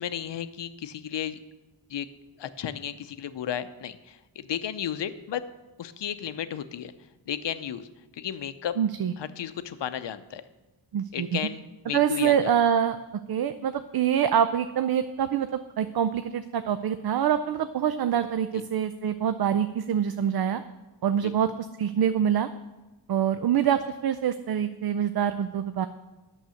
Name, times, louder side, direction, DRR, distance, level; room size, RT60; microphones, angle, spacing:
voice 1, 0.0-1.4 1.9-2.1 2.4-5.4 5.8-6.9 7.3-7.9 8.1-8.8 9.2-10.4 11.1-12.5 18.5-18.6 21.2-21.3, left 9 dB, 75° left, 12 dB, 0.7 m, -33 dB
voice 2, 8.8-9.1 10.9-11.4 11.9-13.0 13.3-15.5 15.8-20.6 21.0-21.5 21.8-22.5 23.1-25.9, right 9 dB, 60° right, 11 dB, 0.5 m, -25 dB
9.1 x 6.5 x 7.0 m, 1.1 s
wide cardioid pair, 110°, 43 cm